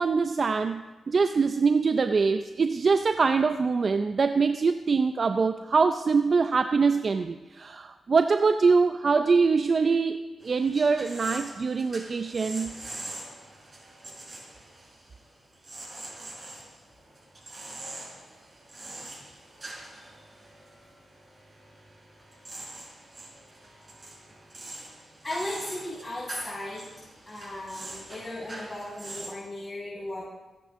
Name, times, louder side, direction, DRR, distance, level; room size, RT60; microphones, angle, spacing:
voice 1, 0.0-10.2 10.4-12.8, right 4 dB, 50° right, 8 dB, 0.5 m, -24 dB
sound 1, 10.4-29.3, right 2 dB, 30° right, 5.2 m, -44 dB
voice 2, 25.2-26.9 27.3-30.2, left 1 dB, 20° left, -8 dB, 6.0 m, -36 dB
25.0 x 9.8 x 3.7 m, 1.2 s
cardioid pair, 85°, 0 cm